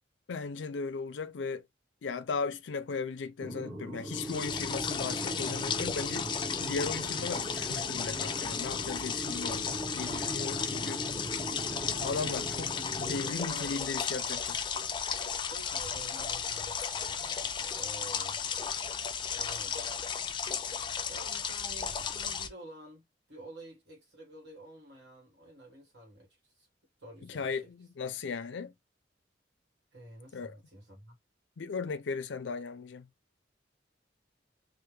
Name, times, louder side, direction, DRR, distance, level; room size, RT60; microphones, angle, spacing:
voice 1, 0.3-1.6 2.0-11.0 12.0-14.6 27.2-28.7 30.3-30.6 31.6-33.1, left 4 dB, 85° left, 0.5 m, -37 dB
sound 1, 3.4-13.3, right 1 dB, 15° right, 0.6 m, -40 dB
sound 2, 4.1-22.5, left 7 dB, 25° left, 0.3 m, -34 dB
voice 2, 13.2-14.4 15.5-18.4 19.3-19.9 21.1-26.7 27.0-27.5 29.9-31.2, right 1 dB, 70° right, 1.4 m, -50 dB
3.3 x 2.1 x 3.1 m
head